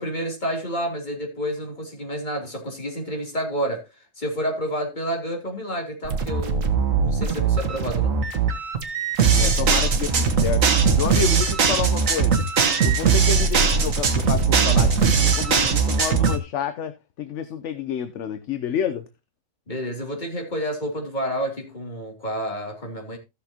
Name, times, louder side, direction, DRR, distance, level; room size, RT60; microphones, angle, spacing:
voice 1, 0.0-3.8 4.2-8.2 19.7-23.2, equal, 30° left, 3.2 m, -29 dB
sound 1, 6.0-16.4, right 5 dB, 70° right, 1.7 m, -20 dB
voice 2, 9.4-10.7 11.0-12.4 12.8-19.1, left 8 dB, 60° left, 1.0 m, -29 dB
15.5 x 6.7 x 2.8 m
omnidirectional pair, 1.5 m